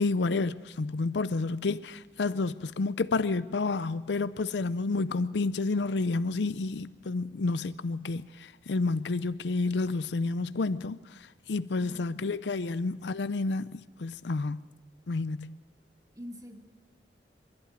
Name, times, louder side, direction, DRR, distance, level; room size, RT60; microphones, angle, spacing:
voice 1, 0.0-11.0 11.5-14.6 15.1-15.6, left 3 dB, 75° left, 0.5 m, -30 dB
voice 2, 16.1-16.6, equal, 20° right, 1.9 m, -46 dB
26.5 x 11.5 x 9.4 m
head